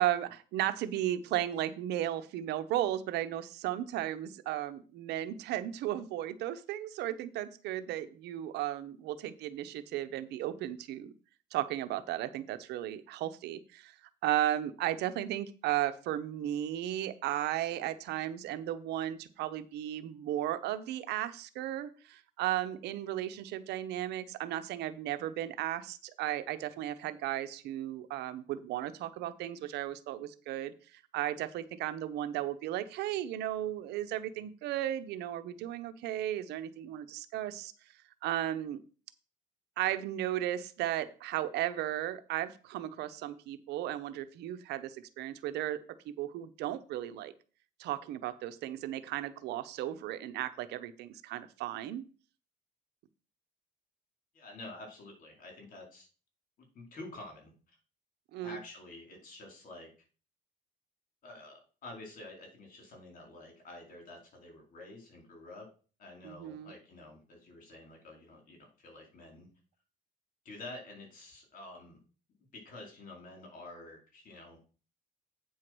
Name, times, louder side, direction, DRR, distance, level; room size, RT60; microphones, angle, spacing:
voice 1, 0.0-11.1 11.5-14.0 14.2-37.7 38.2-38.8 39.8-45.8 46.0-47.3 47.8-52.0 58.3-58.6 66.2-66.7, right 13 dB, 80° right, 11 dB, 0.9 m, -35 dB
voice 2, 54.3-56.1 56.7-57.8 58.4-59.9 61.2-65.7 66.0-69.5 70.4-72.0 72.5-74.6, left 2 dB, 55° left, 1 dB, 4.5 m, -49 dB
8.7 x 4.7 x 6.1 m, 0.37 s
cardioid pair, 110°, 17 cm